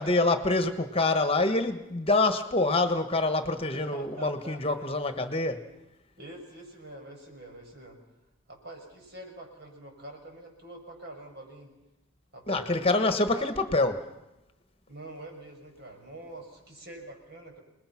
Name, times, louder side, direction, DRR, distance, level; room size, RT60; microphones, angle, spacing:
voice 1, 0.0-5.6 12.5-14.0, left 2 dB, 30° left, 1.4 m, -26 dB
voice 2, 3.7-4.9 6.2-8.0 8.5-11.7 12.3-13.5 14.9-17.6, right 1 dB, 60° right, 6.2 m, -45 dB
28.0 x 21.0 x 5.9 m
head